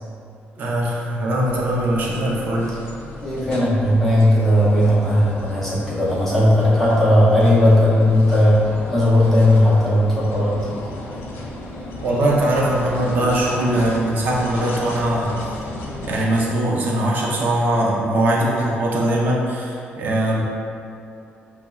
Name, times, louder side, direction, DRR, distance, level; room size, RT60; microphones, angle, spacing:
voice 1, 0.6-2.7 12.0-15.3 16.0-20.4, right 1 dB, 50° right, -3 dB, 0.5 m, -21 dB
sound 1, 1.4-16.4, left 2 dB, 60° left, 0.4 m, -34 dB
voice 2, 3.2-10.8, left 1 dB, 5° left, -9 dB, 0.6 m, -16 dB
5.4 x 2.0 x 2.3 m, 2.5 s
cardioid pair, 175°, 4 cm